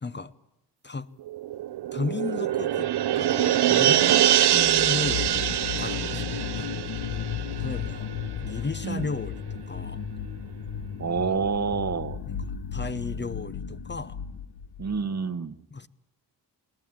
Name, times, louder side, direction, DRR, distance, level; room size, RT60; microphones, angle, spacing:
voice 1, 0.0-0.3 0.8-1.1 1.9-2.9 3.1-6.8 7.5-8.1 8.4-10.0 12.3-14.2 15.7-15.9, left 4 dB, 25° left, 13 dB, 0.8 m, -35 dB
sound 1, 1.3-8.2 8.6-8.7, right 12 dB, 70° right, 0.8 m, -24 dB
sound 2, 4.4-15.0, left 8 dB, 70° left, 1.2 m, -34 dB
voice 2, 11.0-12.2 14.8-15.5, right 5 dB, 40° right, 14 dB, 1.1 m, -28 dB
21.5 x 18.0 x 8.9 m, 0.86 s
cardioid pair, 70°, 42 cm